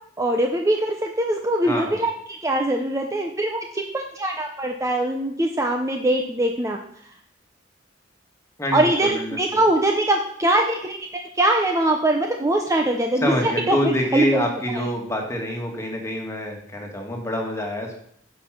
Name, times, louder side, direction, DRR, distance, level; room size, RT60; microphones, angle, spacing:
voice 1, 0.2-2.1 2.4-6.8 8.7-11.0 11.3-14.9, right 1 dB, 15° right, 3 dB, 0.7 m, -22 dB
voice 2, 1.6-2.0 8.6-9.4 13.2-17.9, equal, 15° left, 1 dB, 1.9 m, -26 dB
9.8 x 5.6 x 5.9 m, 0.67 s
head